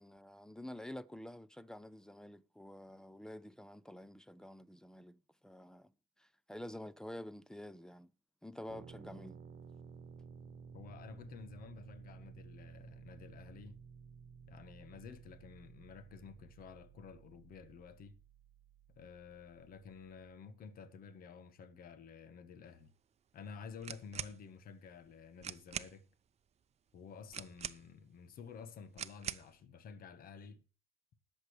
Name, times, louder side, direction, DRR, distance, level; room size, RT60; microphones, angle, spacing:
voice 1, 0.0-5.9 6.2-8.1 8.4-9.4, left 1 dB, 5° left, 0.6 m, -49 dB
sound 1, 8.7-20.3, right 6 dB, 60° right, 1.1 m, -55 dB
voice 2, 10.7-13.8 14.5-18.2 19.0-22.9 23.3-26.0 26.9-30.6, left 6 dB, 60° left, 1.3 m, -52 dB
sound 2, 23.8-24.4 25.1-25.2 25.4-26.0 27.3-28.1 29.0-29.5, right 8 dB, 40° right, 0.7 m, -43 dB
20.5 x 6.8 x 3.2 m
cardioid pair, 110°, 17 cm